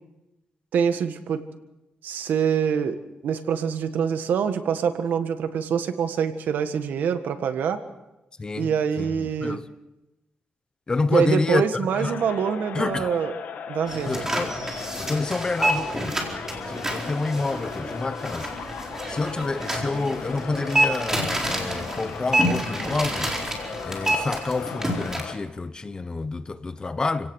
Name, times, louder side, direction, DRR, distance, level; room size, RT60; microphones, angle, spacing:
voice 1, 0.7-1.4 2.0-3.0 3.2-7.8 8.6-9.6 11.1-13.3 13.7-14.2 14.6-14.7, right 7 dB, 85° right, 1.6 m, -25 dB
voice 2, 8.4-8.7 9.0-9.7 10.9-12.2 12.7-13.1 14.1-14.6 15.0-16.2 16.7-18.5 19.1-23.3 23.8-27.3, left 3 dB, 25° left, 1.0 m, -28 dB
sound 1, 11.9-25.3, left 7 dB, 80° left, 2.2 m, -37 dB
sound 2, 13.9-25.2, right 1 dB, 15° right, 4.4 m, -28 dB
29.0 x 17.5 x 6.4 m
cardioid pair, 120°, 3 cm